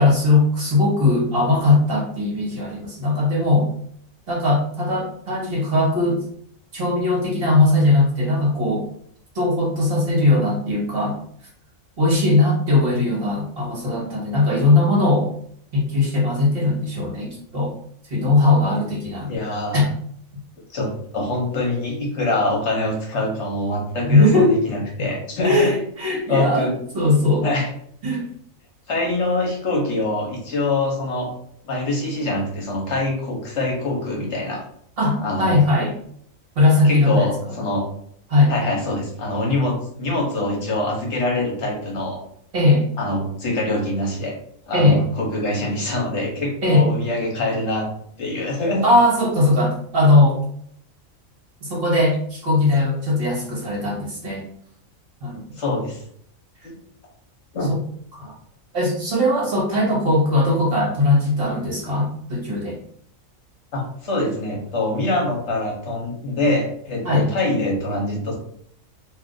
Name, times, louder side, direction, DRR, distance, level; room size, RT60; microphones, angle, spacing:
voice 1, 0.0-3.7 4.3-6.2 6.7-8.9 9.3-11.2 12.0-15.3 15.7-17.7 18.0-19.3 19.7-19.8 24.1-24.6 25.4-27.5 28.0-28.3 35.0-35.9 36.6-37.3 38.3-38.7 42.5-42.9 44.7-45.0 46.6-46.9 48.8-50.4 51.6-54.5 55.2-55.6 57.7-57.8 58.2-58.3 58.7-62.8 67.0-67.3, left 2 dB, 50° right, -4 dB, 1.1 m, -19 dB
voice 2, 19.3-19.9 20.7-25.7 26.3-26.8 27.4-27.7 28.9-31.3 31.6-34.6 35.2-35.6 36.8-37.8 38.5-42.2 43.0-44.3 44.7-47.9 48.2-49.0 55.6-56.0 56.6-56.7 57.5-57.7 63.7-68.4, left 2 dB, 60° left, 0 dB, 1.0 m, -24 dB
2.6 x 2.4 x 3.7 m, 0.65 s
omnidirectional pair, 1.4 m